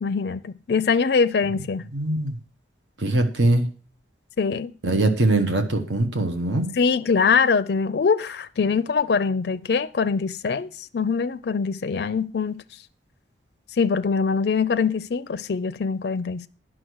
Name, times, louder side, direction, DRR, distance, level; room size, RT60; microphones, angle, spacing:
voice 1, 0.0-1.9 4.4-4.7 6.7-12.6 13.8-16.5, left 5 dB, 60° left, 0.4 m, -23 dB
voice 2, 1.9-2.4 3.0-3.7 4.8-6.7, right 2 dB, 85° right, 1.4 m, -22 dB
10.0 x 6.3 x 6.3 m
head